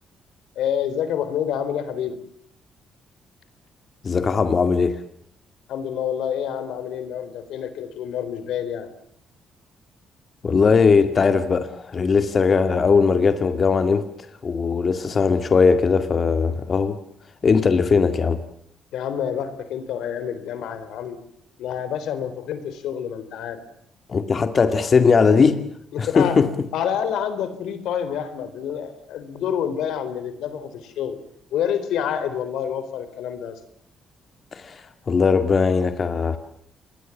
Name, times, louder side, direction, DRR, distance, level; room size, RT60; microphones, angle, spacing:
voice 1, 0.6-2.2 5.7-8.9 18.0-18.1 18.9-21.2 21.6-23.6 25.9-26.4 26.7-31.2 31.5-33.6, left 9 dB, 85° left, 12 dB, 4.0 m, -28 dB
voice 2, 4.0-5.0 10.4-14.1 14.4-17.0 17.4-18.4 24.1-25.6 26.0-26.5 34.5-34.8 35.1-36.4, left 5 dB, 40° left, 9 dB, 2.0 m, -19 dB
28.0 x 21.5 x 7.3 m, 0.70 s
cardioid pair, 90°, 0 cm